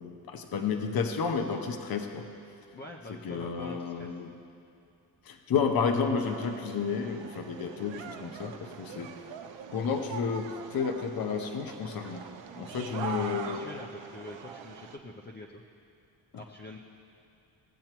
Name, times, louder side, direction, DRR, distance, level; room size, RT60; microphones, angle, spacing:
voice 1, 0.0-2.2 3.2-4.3 5.2-9.1 9.7-12.2 12.5-13.6, left 5 dB, 50° left, 5 dB, 0.8 m, -31 dB
voice 2, 2.7-4.2 12.6-15.6 16.3-16.8, left 2 dB, 25° left, 0 dB, 0.5 m, -45 dB
sound 1, 6.2-15.0, right 6 dB, 70° right, 0.7 m, -43 dB
17.0 x 7.8 x 2.9 m, 2.6 s
cardioid pair, 135°, 46 cm